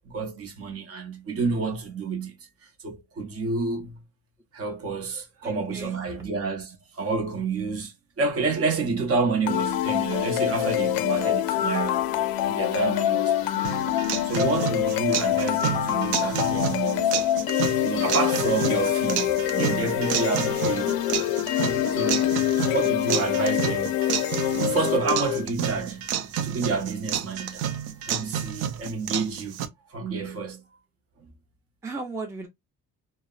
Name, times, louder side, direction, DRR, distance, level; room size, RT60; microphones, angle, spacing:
voice 1, 0.0-2.3 2.6-4.0 4.5-12.1 12.5-13.7 14.2-17.5 17.8-21.3 21.9-22.3 22.7-23.9 24.5-26.1 26.4-27.7 28.1-29.6 29.9-30.6, right 4 dB, 40° right, 0.8 m, -29 dB
voice 2, 5.4-6.3 22.1-22.4 31.8-32.5, right 3 dB, 10° right, 0.4 m, -37 dB
sound 1, 9.5-25.5, left 12 dB, 85° left, 0.5 m, -25 dB
sound 2, 13.6-29.7, right 9 dB, 90° right, 0.6 m, -30 dB
2.8 x 2.0 x 2.3 m
cardioid pair, 110°, 35 cm